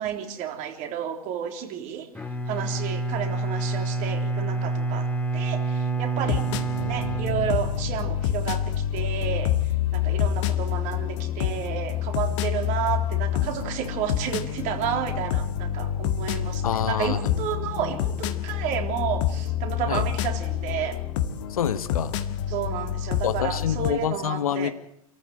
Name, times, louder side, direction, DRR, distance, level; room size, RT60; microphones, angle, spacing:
voice 1, 0.0-2.1 2.5-6.5 6.8-9.5 9.9-21.0 22.5-24.7, right 9 dB, 45° right, 3.6 m, -31 dB
Bowed string instrument, 2.1-8.2, right 3 dB, 5° left, 2.4 m, -28 dB
sound 1, 6.2-23.9, left 10 dB, 55° left, 1.9 m, -27 dB
voice 2, 16.6-17.3 19.9-20.1 21.5-22.2 23.2-24.7, left 9 dB, 75° left, 1.3 m, -27 dB
28.0 x 14.5 x 7.7 m
hypercardioid pair, 95°, 19 cm